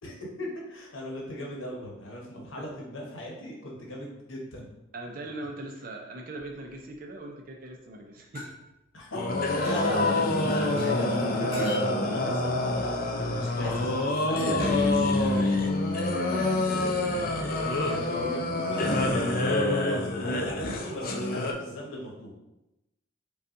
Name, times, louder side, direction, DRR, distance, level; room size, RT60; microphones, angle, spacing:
voice 1, 0.0-4.7 8.9-15.6 17.5-22.3, equal, 75° left, -2 dB, 1.0 m, -38 dB
voice 2, 4.9-8.5 16.3-16.7, right 2 dB, 45° right, 2 dB, 0.5 m, -40 dB
sound 1, 6.4-7.0 8.4-8.5 9.6-9.9 10.8-10.9 11.5-11.9, left 2 dB, 30° left, 1.1 m, -41 dB
sound 2, 9.1-21.5, left 2 dB, 45° left, 0.4 m, -26 dB
5.2 x 2.4 x 2.6 m, 0.94 s
head